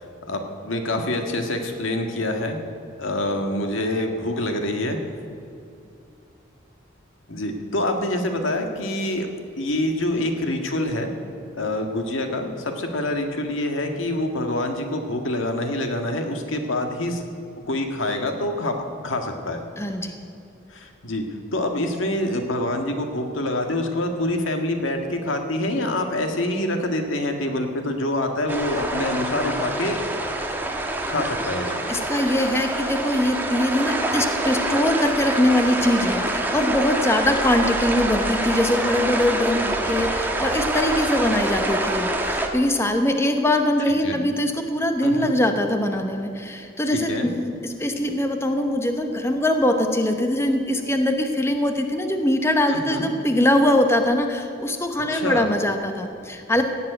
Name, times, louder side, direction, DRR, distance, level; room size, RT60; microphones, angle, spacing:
voice 1, 0.3-2.6 3.0-5.0 7.3-9.3 9.6-11.1 11.6-17.2 17.7-18.7 19.0-19.6 20.7-21.2 21.5-30.0 31.1-31.9 44.0-44.2 45.0-45.3 46.9-47.3 52.7-53.1 55.1-55.5, left 1 dB, 90° left, 4 dB, 1.6 m, -26 dB
voice 2, 19.8-20.2 31.9-56.6, left 1 dB, 15° left, 5 dB, 0.9 m, -22 dB
sound 1, 28.5-42.5, right 1 dB, 10° right, 1.2 m, -26 dB
16.5 x 7.5 x 9.0 m, 2.5 s
head